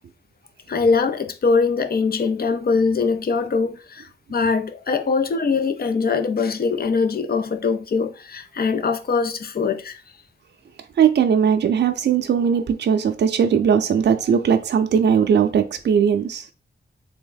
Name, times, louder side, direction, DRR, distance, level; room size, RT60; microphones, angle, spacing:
voice 1, 0.7-10.0, left 4 dB, 55° left, 0.5 m, -22 dB
voice 2, 11.0-16.5, right 7 dB, 65° right, 0.4 m, -19 dB
3.5 x 3.4 x 3.9 m
wide cardioid pair, 155°, 19 cm